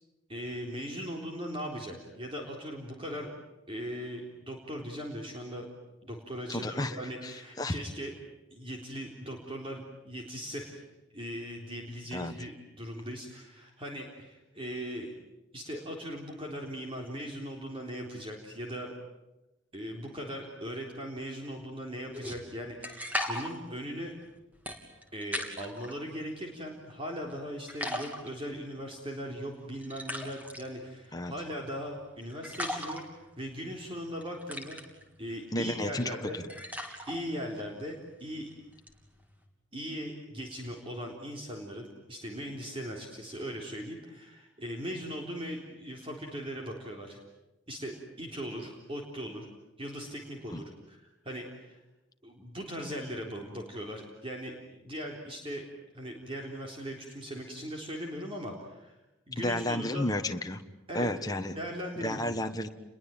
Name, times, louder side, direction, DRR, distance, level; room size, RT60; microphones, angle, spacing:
voice 1, 0.3-3.3 3.7-5.7 6.0-8.1 8.5-10.8 11.1-15.1 15.5-18.9 19.7-24.1 25.1-34.8 35.2-36.4 37.1-38.5 39.7-47.2 47.7-49.5 49.8-51.8 52.2-55.6 55.9-58.9 59.3-60.1 60.9-61.1 61.6-62.3, equal, 25° right, 0 dB, 3.8 m, -39 dB
voice 2, 6.5-7.8 12.1-12.3 31.1-31.3 35.5-36.4 50.5-50.6 59.4-60.6 60.9-61.5 62.0-62.7, left 1 dB, 20° left, 5 dB, 1.4 m, -32 dB
sound 1, 22.1-25.9 26.4-27.4 27.7-39.4, left 1 dB, 10° right, 3.3 m, -40 dB
29.5 x 22.0 x 9.1 m, 1.0 s
head